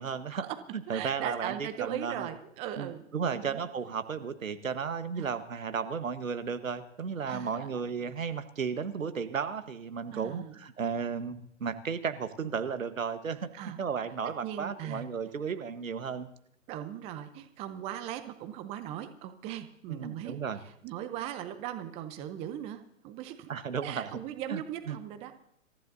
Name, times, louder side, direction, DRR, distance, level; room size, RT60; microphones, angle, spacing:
voice 1, 0.0-0.4 0.7-2.3 2.8-16.3 19.9-20.6 23.5-24.2 24.5-24.6 24.9-25.0, right 6 dB, 80° right, 10 dB, 1.4 m, -34 dB
voice 2, 0.9-3.6 5.2-5.3 7.3-7.8 10.1-10.6 13.5-13.8 14.4-15.0 16.7-23.5 23.8-25.3, right 11 dB, 15° right, 9 dB, 0.7 m, -39 dB
27.0 x 14.5 x 2.7 m, 0.71 s
figure-of-eight pair, 130°, 39 cm